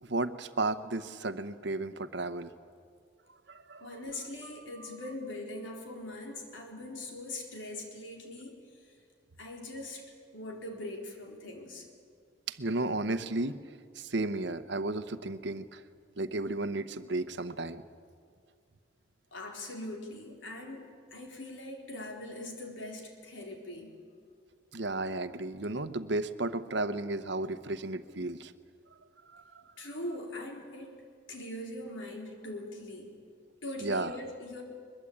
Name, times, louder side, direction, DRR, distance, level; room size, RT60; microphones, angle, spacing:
voice 1, 0.0-2.5 3.5-4.0 4.7-4.9 12.5-13.6 13.9-15.8 16.2-17.8 24.7-28.5 29.2-29.9 33.8-34.2, right 2 dB, 60° right, 12 dB, 1.0 m, -34 dB
voice 2, 3.8-8.6 9.4-10.0 10.3-11.9 19.3-23.9 29.8-30.9 31.3-33.1 33.6-34.6, left 1 dB, 75° left, 1 dB, 4.1 m, -41 dB
22.0 x 22.0 x 8.7 m, 2.1 s
head